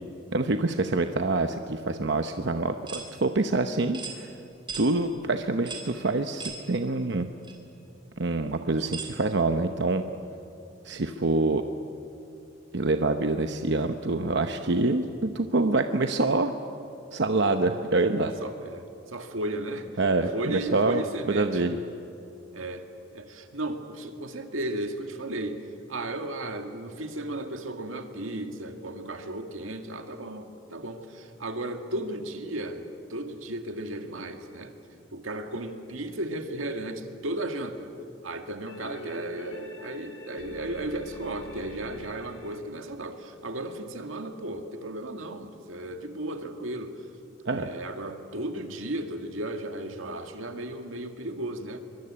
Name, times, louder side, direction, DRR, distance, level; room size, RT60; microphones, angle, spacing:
voice 1, 0.3-4.3 4.8-7.3 8.2-10.0 10.8-11.6 12.7-16.5 17.1-18.3 20.0-21.8 47.5-47.7, right 2 dB, 60° right, 7 dB, 0.9 m, -26 dB
sound 1, 2.9-3.1 3.9-4.2 4.7-4.9 5.7-5.9 6.4-6.6 7.4-7.5 8.9-9.1, right 4 dB, 25° right, 3.0 m, -37 dB
voice 2, 8.5-8.9 18.4-19.9 20.3-21.6 22.5-34.7 35.1-37.9 38.2-47.0 47.5-51.8, right 1 dB, 85° right, 6 dB, 2.0 m, -35 dB
sound 2, 35.5-36.8 38.7-42.6, left 1 dB, 75° left, 2.4 m, -46 dB
23.5 x 23.5 x 8.7 m, 2.8 s
head